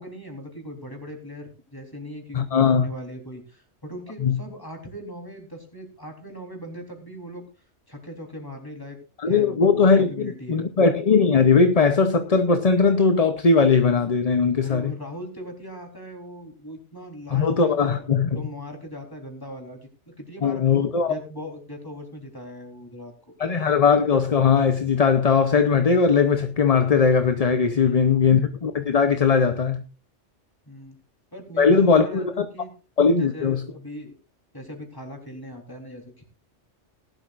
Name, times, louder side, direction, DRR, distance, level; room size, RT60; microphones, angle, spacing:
voice 1, 0.0-7.5 7.9-9.0 9.3-10.7 14.6-20.6 21.1-23.1 27.6-28.3 30.7-31.0 31.3-32.7 33.0-34.2 34.5-36.3, equal, 20° left, 3.8 m, -39 dB
voice 2, 2.3-2.9 4.2-4.4 9.2-10.1 10.5-14.9 17.3-18.3 20.4-21.1 23.4-29.8 31.6-32.4 33.0-33.6, left 5 dB, 40° left, 0.8 m, -19 dB
19.0 x 12.0 x 2.5 m
omnidirectional pair, 1.2 m